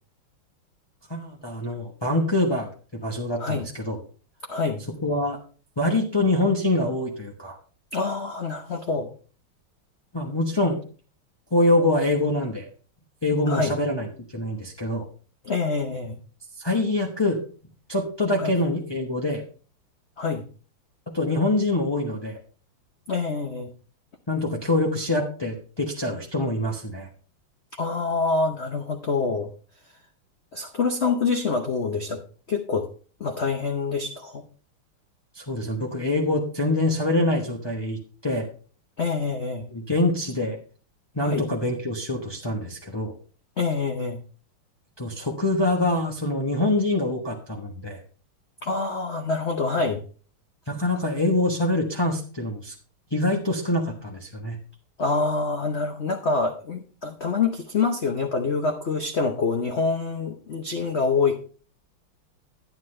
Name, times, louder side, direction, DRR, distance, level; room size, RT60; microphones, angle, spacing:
voice 1, 1.1-4.0 5.0-5.4 5.8-7.6 10.1-10.8 11.5-12.7 13.2-14.1 14.3-15.1 16.6-17.4 17.9-19.4 21.1-22.4 24.3-27.1 35.3-38.5 39.7-40.6 41.1-43.1 45.0-48.0 50.7-52.7 53.1-54.6, left 2 dB, 35° left, -1 dB, 0.4 m, -25 dB
voice 2, 4.5-4.8 7.9-9.1 13.5-13.7 15.4-16.2 18.4-18.5 20.2-20.4 23.1-23.7 27.8-29.5 30.5-32.2 32.5-32.9 33.2-34.4 39.0-39.7 41.2-41.4 43.6-44.2 48.6-50.0 55.0-61.4, left 4 dB, 85° left, 4 dB, 0.5 m, -26 dB
10.5 x 9.6 x 3.2 m, 0.39 s
omnidirectional pair, 2.4 m